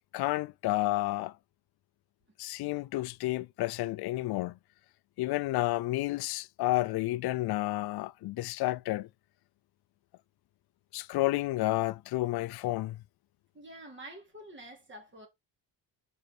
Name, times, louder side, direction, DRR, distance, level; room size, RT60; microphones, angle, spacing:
voice 1, 0.1-1.3 2.4-4.5 5.2-9.1 10.9-13.0, left 17 dB, 60° left, 0.5 m, -31 dB
voice 2, 13.5-15.3, right 1 dB, 25° right, 3.1 m, -47 dB
5.4 x 5.1 x 5.9 m
cardioid pair, 115°, 45 cm